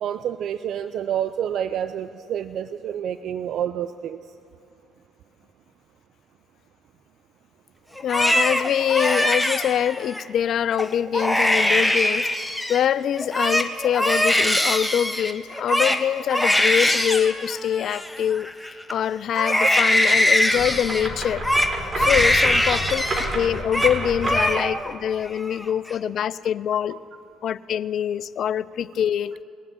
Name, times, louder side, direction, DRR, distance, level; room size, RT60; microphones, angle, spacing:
voice 1, 0.0-4.2 26.9-27.0, right 9 dB, 65° right, 12 dB, 0.4 m, -28 dB
voice 2, 8.0-12.3 12.7-18.5 18.9-21.4 22.0-23.0 23.3-27.0 27.4-29.4, left 9 dB, 60° left, 18 dB, 0.4 m, -24 dB
Crying sobbing, 8.0-10.2 10.7-10.9 11.1-12.9 13.2-18.9 19.3-23.3 23.6-24.0 24.2-24.9 25.3-25.9, left 1 dB, 5° left, 1.2 m, -22 dB
sound 1, 20.5-24.6, right 1 dB, 30° right, 3.8 m, -30 dB
20.5 x 7.7 x 8.8 m, 2.5 s
hypercardioid pair, 50°, 0 cm